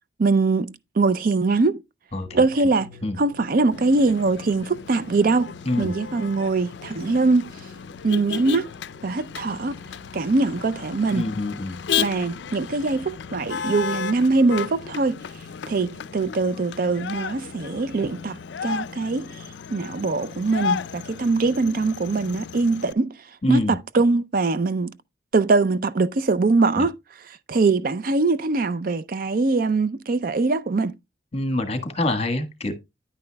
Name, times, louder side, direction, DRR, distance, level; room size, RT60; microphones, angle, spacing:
voice 1, 0.2-1.8 2.3-2.9 3.2-5.5 5.8-7.5 8.0-8.7 9.0-9.7 10.1-11.2 12.0-15.2 15.7-19.4 19.7-23.1 23.5-24.9 25.3-26.9 27.5-31.0, right 3 dB, 50° right, 0.5 m, -22 dB
voice 2, 2.1-2.7 3.0-3.2 5.6-5.9 11.1-11.8 23.4-23.8 26.8-26.9 31.3-32.7, left 2 dB, 35° left, 1.4 m, -26 dB
sound 1, 2.2-19.5, left 2 dB, 25° right, 3.2 m, -51 dB
Motor vehicle (road), 3.7-22.9, left 7 dB, 65° left, 0.4 m, -34 dB
10.0 x 9.4 x 2.2 m
head